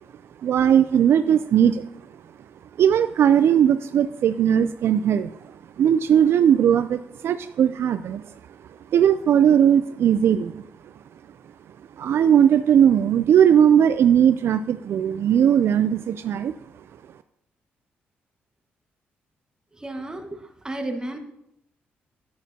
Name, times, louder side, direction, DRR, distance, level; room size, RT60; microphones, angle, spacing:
voice 1, 0.4-1.9 2.8-8.2 8.9-10.6 12.0-16.5, right 9 dB, 65° right, 11 dB, 0.4 m, -18 dB
voice 2, 19.7-21.2, right 1 dB, 15° right, 4 dB, 1.5 m, -33 dB
10.5 x 8.8 x 2.8 m, 0.80 s
supercardioid pair, 65°, 5 cm